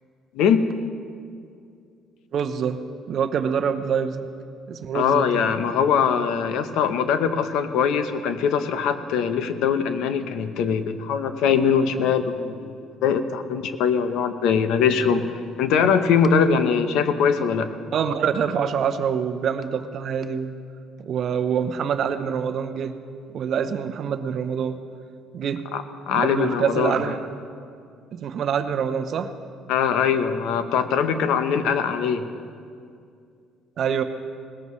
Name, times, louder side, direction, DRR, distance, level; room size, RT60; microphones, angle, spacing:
voice 1, 0.3-0.7 4.9-15.3 15.6-17.7 25.7-27.1 29.7-32.3, left 6 dB, 75° left, 10 dB, 0.8 m, -22 dB
voice 2, 2.3-2.8 3.1-4.3 4.7-5.6 16.5-16.6 17.9-20.5 21.0-22.9 23.3-24.8 25.3-25.6 26.1-27.3 28.1-29.3 31.6-31.7 33.8-34.0, right 7 dB, 50° right, 9 dB, 0.7 m, -25 dB
19.0 x 15.0 x 3.2 m, 2.3 s
cardioid pair, 130°, 0 cm